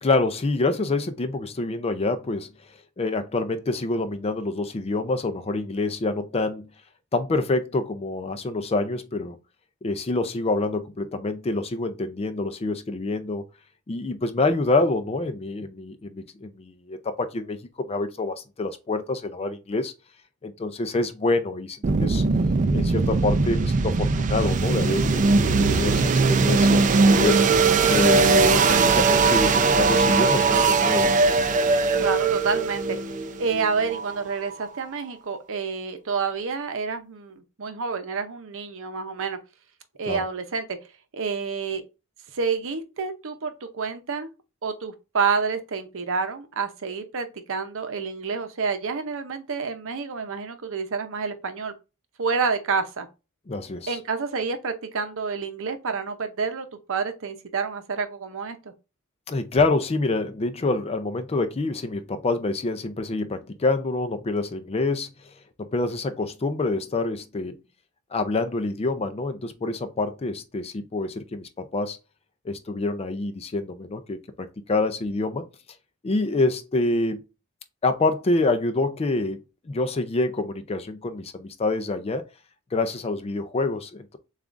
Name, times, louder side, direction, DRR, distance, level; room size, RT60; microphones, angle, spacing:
voice 1, 0.0-2.5 3.0-6.7 7.1-9.4 9.8-13.4 13.9-17.6 17.9-19.9 20.4-22.2 22.7-27.4 27.9-31.1 40.1-40.2 53.5-54.0 59.3-65.1 65.6-67.6 68.1-72.0 72.4-75.4 76.0-77.2 77.8-82.2 82.7-84.2, left 2 dB, 25° left, 0.4 m, -26 dB
sound 1, 21.8-34.7, right 4 dB, 35° right, 0.4 m, -20 dB
voice 2, 32.0-33.0 33.4-39.4 40.0-40.7 41.1-41.8 42.3-44.3 44.6-51.7 52.2-53.1 53.9-58.7, right 5 dB, 65° right, 0.7 m, -28 dB
6.9 x 2.4 x 2.5 m
head